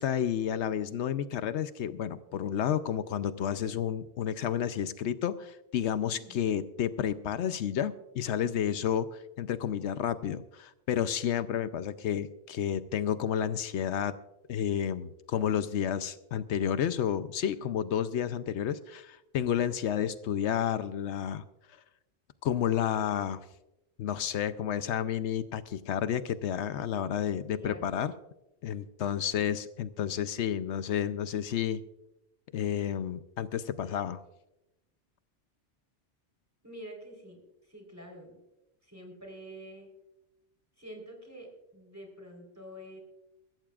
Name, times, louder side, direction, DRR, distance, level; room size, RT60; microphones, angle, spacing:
voice 1, 0.0-14.1 14.5-21.4 22.4-23.4 24.0-28.1 28.6-31.8 32.5-34.2, left 9 dB, 80° left, 12 dB, 0.9 m, -31 dB
voice 2, 6.1-6.4 27.5-27.9 36.6-38.4 38.8-39.9 40.8-43.0, equal, 15° right, 1 dB, 3.8 m, -47 dB
23.0 x 13.5 x 2.4 m, 0.93 s
omnidirectional pair, 1.2 m